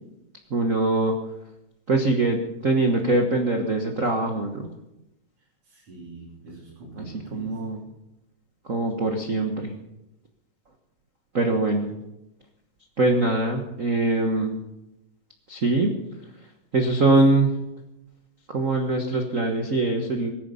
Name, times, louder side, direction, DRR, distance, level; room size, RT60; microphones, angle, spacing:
voice 1, 0.5-1.2 1.9-4.7 7.0-7.8 8.6-9.8 11.3-11.9 13.0-14.6 15.5-15.9 16.7-17.5 18.5-20.3, right 2 dB, 75° right, 3 dB, 0.7 m, -23 dB
voice 2, 5.7-7.9, right 3 dB, 45° right, -6 dB, 4.3 m, -44 dB
23.0 x 10.0 x 5.6 m, 0.92 s
omnidirectional pair, 3.7 m